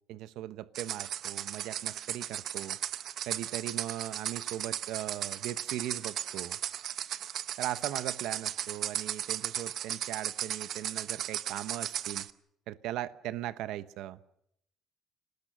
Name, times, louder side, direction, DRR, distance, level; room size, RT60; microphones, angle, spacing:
voice 1, 0.1-2.8 3.3-6.6 7.6-12.3 12.7-14.2, right 13 dB, 75° right, 14 dB, 1.0 m, -39 dB
sound 1, 0.7-12.3, right 10 dB, 50° right, 0.8 m, -36 dB
29.5 x 19.0 x 6.7 m, 0.74 s
cardioid pair, 155°, 0 cm